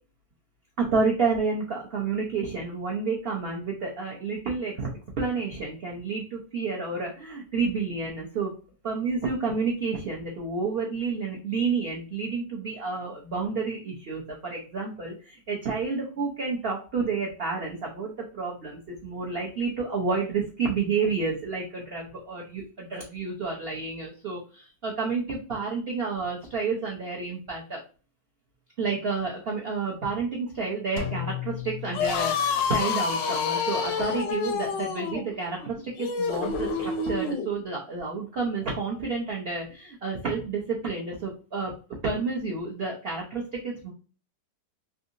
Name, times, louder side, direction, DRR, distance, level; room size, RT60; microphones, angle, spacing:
voice 1, 0.8-4.9 5.2-8.5 8.8-27.8 28.8-41.7 42.0-43.9, right 4 dB, 65° right, -2 dB, 0.6 m, -30 dB
Drum, 31.0-32.9, left 9 dB, 65° left, 0.8 m, -35 dB
sound 1, 31.8-37.5, left 5 dB, 85° left, 1.3 m, -28 dB
3.7 x 2.7 x 2.5 m, 0.36 s
omnidirectional pair, 1.9 m